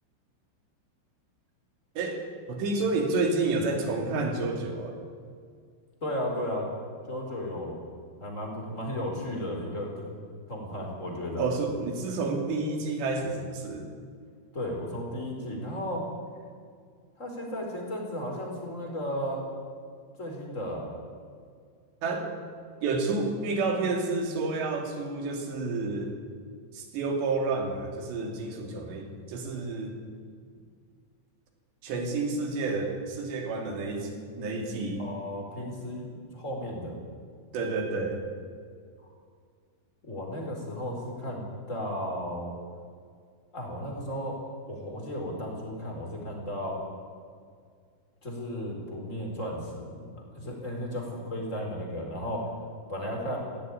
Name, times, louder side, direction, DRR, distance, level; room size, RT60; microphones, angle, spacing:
voice 1, 2.5-5.0 11.4-13.9 22.0-22.3 22.8-26.1 26.7-29.9 31.8-34.1 34.4-35.0 37.5-38.2, right 3 dB, 60° right, 2 dB, 4.8 m, -30 dB
voice 2, 6.0-6.7 7.1-7.8 8.2-10.2 10.5-11.5 14.5-16.0 17.2-19.4 20.2-20.9 35.0-37.0 40.0-42.5 43.5-44.4 44.7-46.8 48.2-52.5 52.9-53.4, equal, 15° left, 0 dB, 4.1 m, -34 dB
17.0 x 16.0 x 10.0 m, 2.1 s
omnidirectional pair, 5.7 m